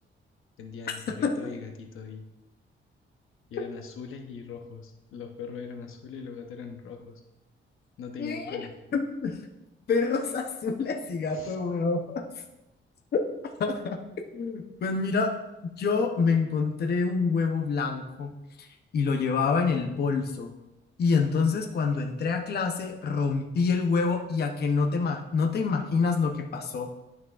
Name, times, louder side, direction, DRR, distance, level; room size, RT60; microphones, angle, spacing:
voice 1, 0.6-2.2 3.5-7.2 8.0-8.7 11.3-11.6, left 5 dB, 90° left, 3 dB, 0.9 m, -41 dB
voice 2, 8.2-8.7 8.9-9.4 9.9-12.3 13.6-14.0 14.3-15.3 15.8-18.7 18.9-20.5 21.0-26.9, left 4 dB, 50° left, 2 dB, 0.8 m, -27 dB
11.0 x 6.1 x 2.5 m, 0.95 s
wide cardioid pair, 150°, 21 cm